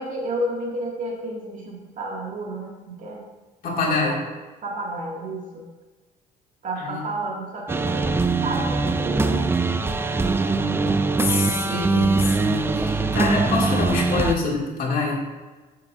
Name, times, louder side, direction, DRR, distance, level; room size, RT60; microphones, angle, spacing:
voice 1, 0.0-3.2 3.8-4.4 4.6-5.7 6.6-11.8, right 1 dB, 50° right, -2 dB, 2.1 m, -32 dB
voice 2, 3.6-4.2 6.8-7.0 11.2-15.2, left 3 dB, 55° left, -3 dB, 2.5 m, -25 dB
sound 1, 7.7-14.3, right 3 dB, 15° right, 0.4 m, -22 dB
11.0 x 7.4 x 2.6 m, 1.2 s
cardioid pair, 110°, 17 cm